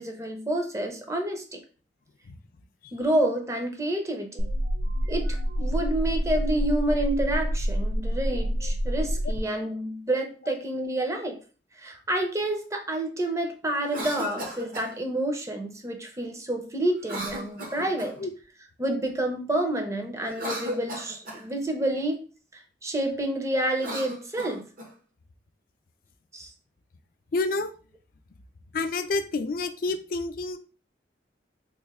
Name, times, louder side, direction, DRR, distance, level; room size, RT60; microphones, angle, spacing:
voice 1, 0.0-1.6 2.9-4.5 5.1-5.3 5.6-11.4 11.7-18.2 18.8-22.2 22.8-24.6 26.3-26.5, right 1 dB, 15° right, 3 dB, 0.6 m, -29 dB
sound 1, 4.4-9.4, equal, 70° right, 0.4 m, -27 dB
Cough, 13.8-14.9 17.0-18.3 20.2-21.4 23.7-24.9, equal, 50° right, 0.9 m, -36 dB
voice 2, 27.3-27.7 28.7-30.6, left 3 dB, 50° left, 9 dB, 0.4 m, -28 dB
3.1 x 2.6 x 3.5 m, 0.36 s
head